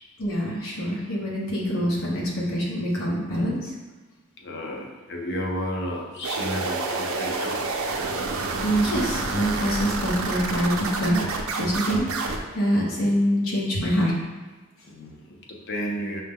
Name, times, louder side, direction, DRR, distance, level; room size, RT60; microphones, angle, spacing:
voice 1, 0.2-3.7 8.6-11.2 11.6-14.1, equal, 90° left, -4 dB, 1.1 m, -25 dB
voice 2, 4.4-7.6 14.9-16.2, equal, 55° left, 0 dB, 0.6 m, -32 dB
sound 1, 6.2-12.4, right 3 dB, 85° right, 0.5 m, -28 dB
5.5 x 2.2 x 3.6 m, 1.3 s
head